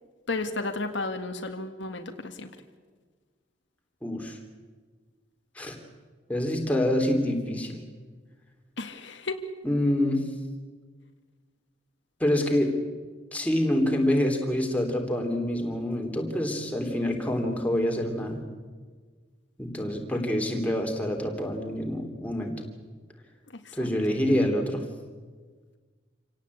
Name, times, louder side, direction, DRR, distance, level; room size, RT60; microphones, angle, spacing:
voice 1, 0.3-2.5 8.8-9.4 23.5-23.9, left 3 dB, 70° left, 6 dB, 1.8 m, -33 dB
voice 2, 4.0-4.4 5.6-5.7 6.3-7.8 9.6-10.2 12.2-12.8 13.3-18.4 19.6-22.5 23.8-24.8, left 1 dB, 10° left, 2 dB, 3.3 m, -26 dB
27.0 x 17.5 x 8.5 m, 1.5 s
head